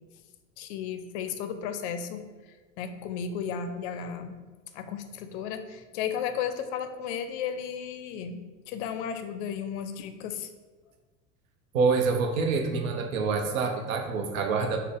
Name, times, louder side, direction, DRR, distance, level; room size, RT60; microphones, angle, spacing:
voice 1, 0.6-2.2 2.8-4.4 4.7-10.5, left 7 dB, 60° left, 8 dB, 0.5 m, -34 dB
voice 2, 11.7-14.8, right 4 dB, 80° right, 4 dB, 0.6 m, -26 dB
4.1 x 2.1 x 3.3 m, 1.3 s
hypercardioid pair, 80°, 40 cm